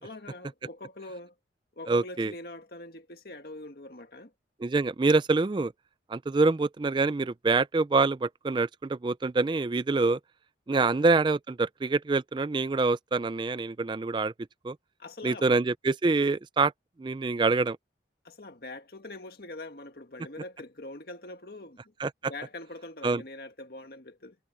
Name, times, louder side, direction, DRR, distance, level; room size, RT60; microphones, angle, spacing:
voice 1, 0.0-1.3 1.7-4.3 10.7-11.1 15.0-15.5 18.2-21.9 22.2-24.4, left 2 dB, 55° left, 1.9 m, -43 dB
voice 2, 1.9-2.3 4.6-5.7 6.1-10.2 10.7-14.3 14.6-14.8 15.2-16.7 17.0-17.8 22.0-22.3 23.0-23.2, right 3 dB, 25° right, 0.3 m, -25 dB
head